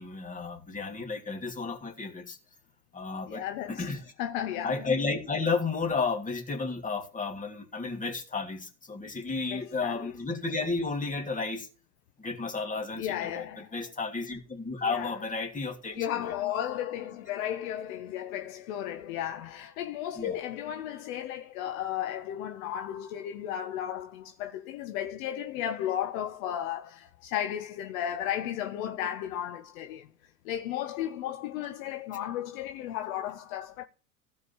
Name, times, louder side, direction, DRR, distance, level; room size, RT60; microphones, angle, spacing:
voice 1, 0.0-2.4 2.9-4.0 4.6-11.7 12.2-16.3 20.2-20.4, left 4 dB, 15° left, 2.9 m, -32 dB
voice 2, 3.3-3.9 4.2-4.9 9.5-10.1 13.0-13.7 14.8-15.2 15.9-30.1 30.4-33.8, left 11 dB, 55° left, 1.2 m, -34 dB
15.5 x 5.4 x 5.6 m
hypercardioid pair, 85°, 49 cm